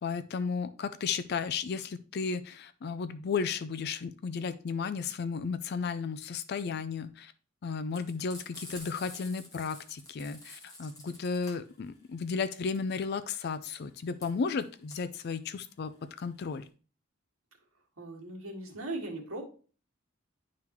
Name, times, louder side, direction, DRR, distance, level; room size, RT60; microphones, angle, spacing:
voice 1, 0.0-7.3 7.6-16.7, left 5 dB, 50° left, 12 dB, 0.4 m, -34 dB
Frying (food), 7.9-16.7, left 1 dB, 15° left, 1.6 m, -49 dB
voice 2, 18.0-19.4, right 2 dB, 80° right, -2 dB, 1.8 m, -38 dB
10.5 x 3.6 x 3.0 m, 0.38 s
head